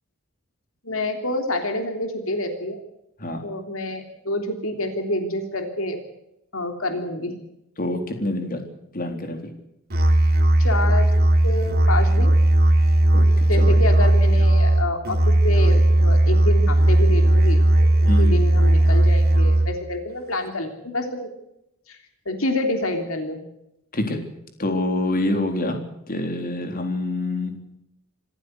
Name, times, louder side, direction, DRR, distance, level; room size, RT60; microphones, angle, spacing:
voice 1, 0.8-2.8 3.4-6.0 6.5-7.3 10.6-11.1 11.4-12.3 13.5-21.3 21.9-22.0 22.2-23.4, left 1 dB, 70° left, 5 dB, 3.2 m, -27 dB
voice 2, 7.8-8.6 8.9-9.4 13.1-13.8 18.1-18.4 23.9-24.2 24.6-25.8 26.1-27.6, left 1 dB, 40° left, 5 dB, 3.7 m, -26 dB
Musical instrument, 9.9-19.9, right 1 dB, 50° right, 2.9 m, -17 dB
27.0 x 14.5 x 8.1 m, 0.84 s
head